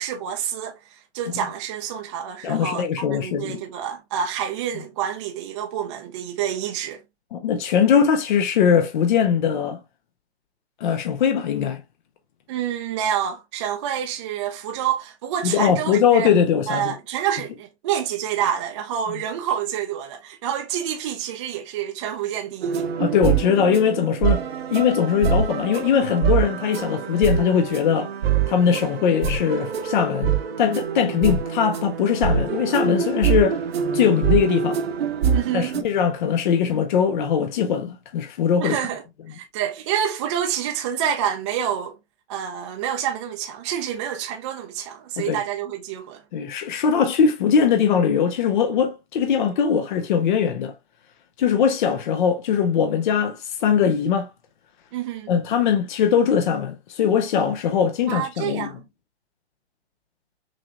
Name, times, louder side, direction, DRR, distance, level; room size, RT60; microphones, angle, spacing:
voice 1, 0.0-7.0 12.5-16.3 16.7-22.9 35.3-35.7 38.6-39.0 39.3-42.0 42.3-46.2 54.9-55.3 58.1-58.8, right 9 dB, 30° right, 0.5 m, -28 dB
voice 2, 2.4-3.6 7.3-9.8 10.8-11.8 15.4-16.9 23.0-28.1 28.5-33.6 33.9-34.8 35.5-38.8 45.2-45.4 46.3-50.7 51.4-54.3 55.3-58.7, left 7 dB, 45° left, 0.7 m, -21 dB
sound 1, 22.6-35.8, right 7 dB, 60° right, 0.9 m, -25 dB
6.1 x 2.8 x 2.3 m
hypercardioid pair, 130°, 33 cm